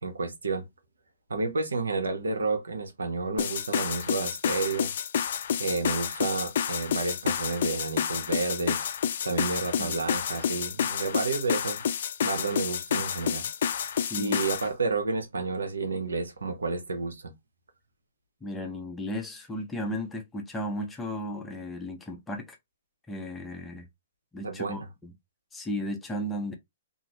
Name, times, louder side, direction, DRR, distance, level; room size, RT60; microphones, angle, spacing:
voice 1, 0.0-0.6 1.3-4.9 5.6-8.8 9.2-11.8 12.2-13.5 14.2-17.3 24.4-24.9, right 3 dB, 85° right, 0.8 m, -30 dB
sound 1, 3.4-14.7, left 8 dB, 60° left, 0.3 m, -29 dB
voice 2, 14.0-14.4 18.4-22.6 23.1-23.8 24.3-25.1 25.5-26.6, equal, 10° left, 0.7 m, -35 dB
2.6 x 2.5 x 3.0 m
hypercardioid pair, 130°, 0 cm